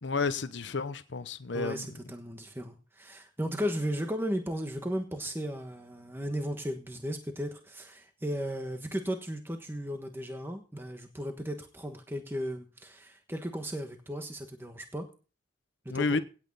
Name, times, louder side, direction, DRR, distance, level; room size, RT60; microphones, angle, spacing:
voice 1, 0.0-1.9 15.9-16.2, left 4 dB, 75° left, 0.8 m, -31 dB
voice 2, 1.5-15.1 15.8-16.2, equal, 10° right, 1.3 m, -35 dB
17.5 x 8.8 x 4.1 m
head